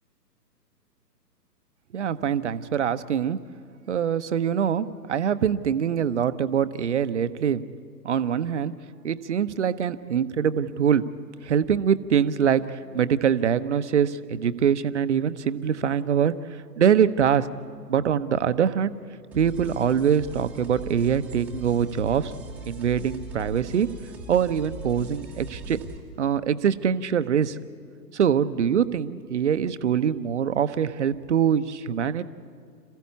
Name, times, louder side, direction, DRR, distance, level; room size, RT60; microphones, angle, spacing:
voice 1, 1.9-3.4 3.9-7.6 8.0-8.7 9.0-11.1 11.4-16.3 16.8-17.5 17.9-18.9 19.3-22.3 22.7-23.9 24.3-25.8 26.2-27.6 28.1-32.2, right 8 dB, 45° right, 13 dB, 0.8 m, -23 dB
sound 1, 19.3-26.0, right 2 dB, 5° right, 0.9 m, -40 dB
27.0 x 15.0 x 8.5 m, 2.2 s
figure-of-eight pair, 130°, 49 cm